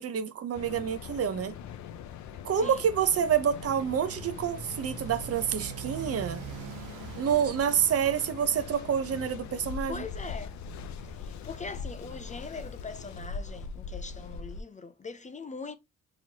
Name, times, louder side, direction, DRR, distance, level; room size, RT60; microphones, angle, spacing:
voice 1, 0.0-1.5 2.4-6.4 7.1-10.0, right 8 dB, 50° right, 0.7 m, -28 dB
Mechanical fan, 0.5-14.6, left 6 dB, 70° left, 0.6 m, -41 dB
voice 2, 2.6-2.9 9.9-10.6 11.2-15.8, left 4 dB, 25° left, 0.5 m, -41 dB
Motorcycle, 3.1-9.1, right 11 dB, 85° right, 0.5 m, -44 dB
4.3 x 3.0 x 2.9 m
cardioid pair, 90°, 30 cm